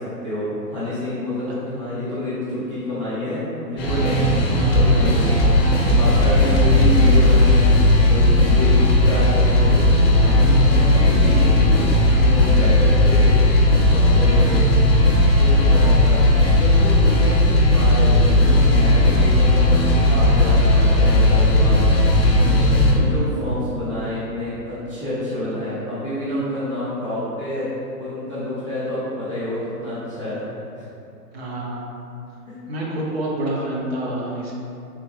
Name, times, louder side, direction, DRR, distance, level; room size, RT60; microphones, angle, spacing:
voice 1, 0.0-7.7 8.1-13.6 13.9-14.7 15.4-16.2 16.5-21.8 22.4-27.7 28.0-30.4 30.8-30.9 32.5-32.6, left 1 dB, 20° left, -12 dB, 0.3 m, -28 dB
sound 1, 3.8-22.9, left 1 dB, 40° left, 0.8 m, -16 dB
voice 2, 23.1-23.4 31.3-31.8 32.7-34.5, right 1 dB, 40° right, -3 dB, 0.6 m, -27 dB
3.4 x 2.9 x 3.0 m, 2.6 s
figure-of-eight pair, 130°, 49 cm